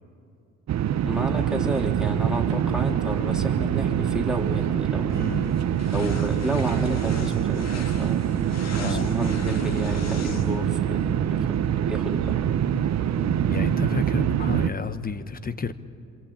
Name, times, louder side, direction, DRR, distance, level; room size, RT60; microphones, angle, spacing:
sound 1, 0.7-14.7, right 10 dB, 60° right, 1.0 m, -25 dB
voice 1, 1.0-5.1 5.9-8.2 8.8-11.5 11.8-12.5, right 1 dB, ahead, 0 dB, 3.1 m, -31 dB
sound 2, 5.1-10.7, left 5 dB, 60° left, 2.0 m, -41 dB
voice 2, 5.1-5.7 8.8-9.1 13.2-15.7, left 5 dB, 30° left, 13 dB, 1.1 m, -32 dB
26.5 x 24.5 x 8.7 m, 2.7 s
cardioid pair, 90°, 30 cm